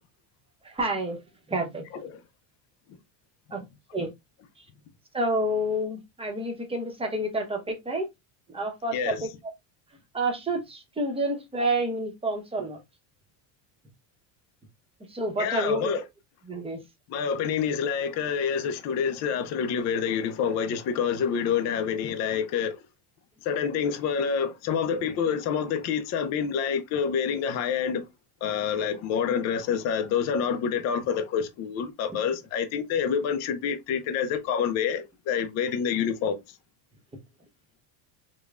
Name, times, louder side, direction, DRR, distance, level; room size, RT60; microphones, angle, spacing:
voice 1, 0.6-1.2 1.5-1.8 3.5-3.6 3.9-4.1 5.1-8.0 8.5-9.3 10.1-12.8 15.1-15.9 16.5-16.8, right 1 dB, 10° right, 0.8 m, -29 dB
voice 2, 8.9-9.3 15.4-16.0 17.1-22.8 23.5-28.0 28.4-36.4, left 7 dB, 35° left, 0.4 m, -27 dB
5.1 x 2.1 x 2.4 m
cardioid pair, 140°, 50 cm